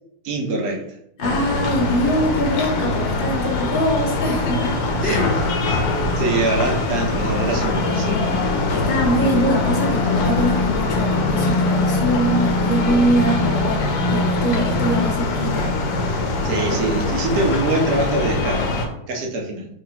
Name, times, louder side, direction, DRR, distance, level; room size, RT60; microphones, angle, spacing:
voice 1, 0.2-0.9 5.0-5.2 5.6-5.8 6.2-8.2 16.4-18.6 19.1-19.7, right 3 dB, 75° right, 1 dB, 1.2 m, -24 dB
sound 1, 1.2-18.9, left 3 dB, 90° left, 1.1 m, -22 dB
voice 2, 1.2-4.8 5.0-5.3 7.8-8.4 8.7-15.7, equal, 45° left, 0 dB, 0.9 m, -23 dB
3.7 x 3.3 x 2.7 m, 0.77 s
omnidirectional pair, 1.6 m